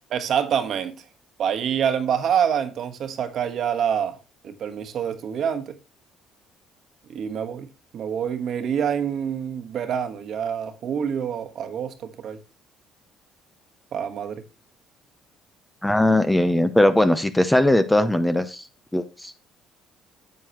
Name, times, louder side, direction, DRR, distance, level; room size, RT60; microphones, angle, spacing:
voice 1, 0.1-1.0 1.4-4.2 4.4-5.7 7.1-7.7 7.9-12.4 13.9-14.4, right 8 dB, 55° right, 1.2 m, -26 dB
voice 2, 15.8-18.6 18.9-19.3, left 1 dB, 5° left, 0.7 m, -19 dB
9.5 x 7.6 x 3.0 m
cardioid pair, 120°, 0 cm